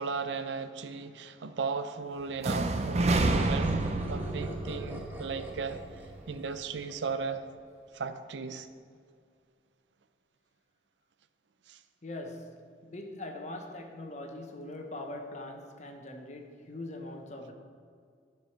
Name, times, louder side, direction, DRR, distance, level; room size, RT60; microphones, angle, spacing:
voice 1, 0.0-5.8 6.3-7.4 7.9-8.7 11.7-11.8, right 5 dB, 85° right, 11 dB, 0.5 m, -36 dB
sound 1, 2.4-6.3, right 2 dB, 40° right, 0.6 m, -30 dB
sound 2, 3.0-7.6, right 1 dB, 10° right, 1.1 m, -44 dB
voice 2, 12.0-17.5, left 1 dB, 40° left, 4 dB, 0.9 m, -42 dB
12.0 x 4.7 x 5.8 m, 2.2 s
head